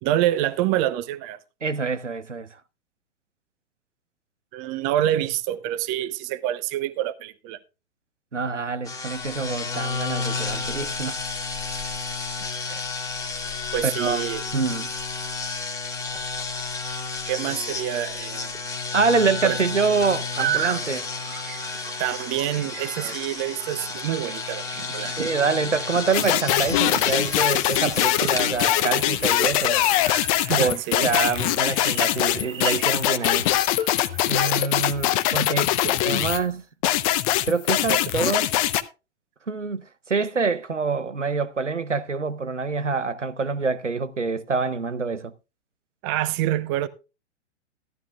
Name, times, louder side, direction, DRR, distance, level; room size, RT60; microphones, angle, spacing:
voice 1, 0.0-1.4 4.5-7.6 12.7-12.8 13.7-14.4 17.2-18.6 19.4-19.6 22.0-25.1 30.4-31.1 35.8-36.0 37.9-38.0 46.0-46.9, right 13 dB, 30° right, 0.9 m, -27 dB
voice 2, 1.6-2.5 8.3-11.2 13.8-14.2 14.5-14.9 18.9-21.1 23.0-23.1 25.2-29.8 30.6-30.8 31.0-33.5 34.3-35.7 36.0-36.6 37.5-38.5 39.5-45.3, right 4 dB, 85° right, 0.9 m, -26 dB
sound 1, 8.8-28.5, left 4 dB, 10° left, 1.7 m, -32 dB
sound 2, 20.3-34.6, right 11 dB, 50° right, 1.1 m, -36 dB
sound 3, 26.1-36.4 36.8-38.8, left 14 dB, 30° left, 0.8 m, -22 dB
15.0 x 12.5 x 2.3 m
figure-of-eight pair, 110°, 35 cm